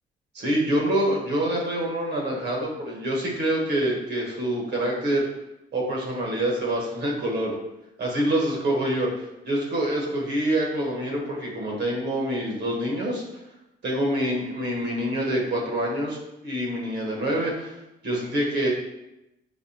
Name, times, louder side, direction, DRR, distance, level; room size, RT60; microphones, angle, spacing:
voice 1, 0.3-5.3 5.7-7.5 8.0-13.2 13.8-16.2 16.4-17.8 18.0-18.7, right 1 dB, 60° right, -2 dB, 1.1 m, -26 dB
5.3 x 2.2 x 2.8 m, 0.90 s
cardioid pair, 90°, 20 cm